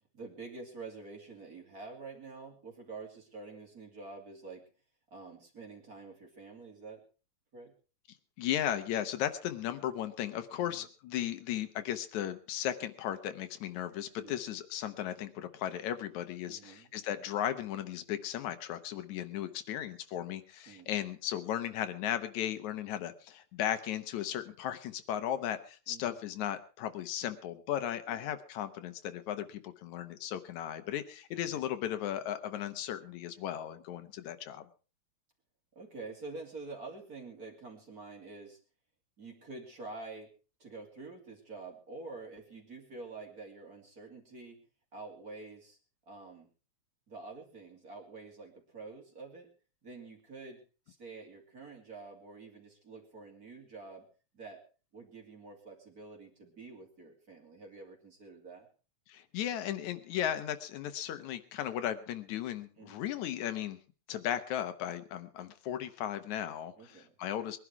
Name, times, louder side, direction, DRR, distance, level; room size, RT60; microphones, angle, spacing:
voice 1, 0.1-4.6 5.1-7.0 7.5-7.7 10.6-10.8 14.2-14.4 16.4-16.9 20.7-20.9 25.9-26.2 28.1-28.2 31.3-31.6 35.7-38.6 39.2-40.3 40.6-44.6 44.9-45.8 46.1-46.5 47.1-49.5 49.8-50.6 50.9-54.1 54.3-54.6 54.9-58.7 62.8-63.1 66.8-67.1, right 3 dB, 30° right, 1 dB, 3.1 m, -47 dB
voice 2, 8.4-34.7 59.1-63.8 64.1-67.6, left 11 dB, 80° left, 10 dB, 2.3 m, -36 dB
21.0 x 11.0 x 4.7 m, 0.37 s
omnidirectional pair, 3.4 m